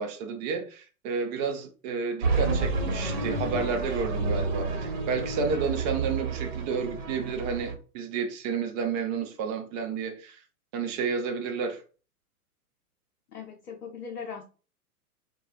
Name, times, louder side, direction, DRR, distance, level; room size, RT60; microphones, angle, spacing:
voice 1, 0.0-10.4 10.7-11.8, right 5 dB, 30° right, 0.5 m, -31 dB
sound 1, 2.2-7.7, right 3 dB, 55° right, 1.3 m, -30 dB
voice 2, 13.3-14.4, left 6 dB, 85° left, 0.7 m, -39 dB
2.2 x 2.2 x 2.8 m
figure-of-eight pair, 105°, 45 cm